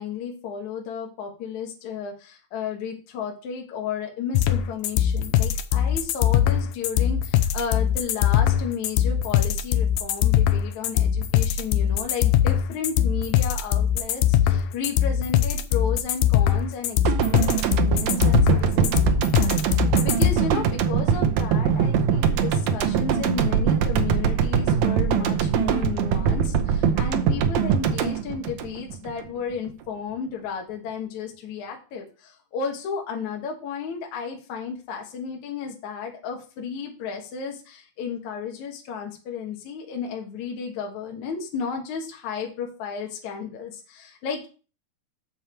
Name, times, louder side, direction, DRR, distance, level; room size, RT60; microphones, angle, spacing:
voice 1, 0.0-17.0 17.3-44.5, left 6 dB, 60° left, 1 dB, 2.5 m, -33 dB
sound 1, 4.3-20.3, left 10 dB, 75° left, 2.0 m, -21 dB
sound 2, 17.0-29.2 29.5-29.7, right 7 dB, 80° right, 1.6 m, -22 dB
7.2 x 6.9 x 4.4 m, 0.35 s
omnidirectional pair, 4.1 m